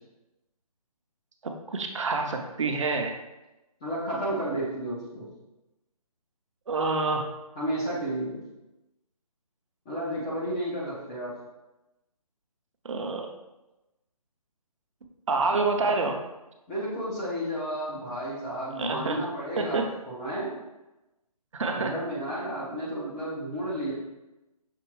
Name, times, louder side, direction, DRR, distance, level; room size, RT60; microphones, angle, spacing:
voice 1, 1.4-3.1 6.7-7.3 12.8-13.3 15.3-16.2 18.8-19.2 19.6-19.9 21.5-22.0, right 3 dB, 55° right, 3 dB, 0.6 m, -27 dB
voice 2, 3.8-5.3 7.6-8.4 9.9-11.3 16.7-20.6 21.7-23.9, right 1 dB, 10° left, -7 dB, 0.4 m, -32 dB
5.9 x 3.0 x 3.0 m, 0.99 s
figure-of-eight pair, 155°, 20 cm